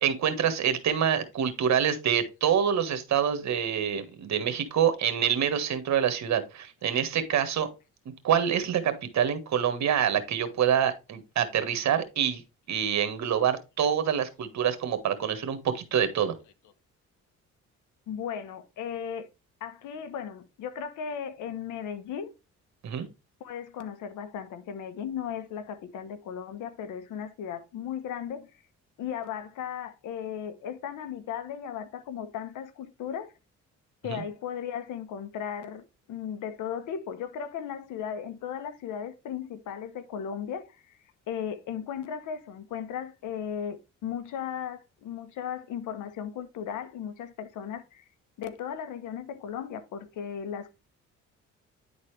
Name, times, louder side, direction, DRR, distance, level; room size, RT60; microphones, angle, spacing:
voice 1, 0.0-7.7 8.2-12.4 12.7-16.3 22.8-23.1 34.1-34.2, right 8 dB, 65° right, 1.5 m, -26 dB
voice 2, 18.1-19.3 19.6-22.3 23.4-28.5 29.0-33.3 34.0-35.8 36.1-41.0 41.3-48.0 48.4-50.7, left 8 dB, 85° left, 1.1 m, -36 dB
9.9 x 4.1 x 3.2 m
cardioid pair, 90°, 30 cm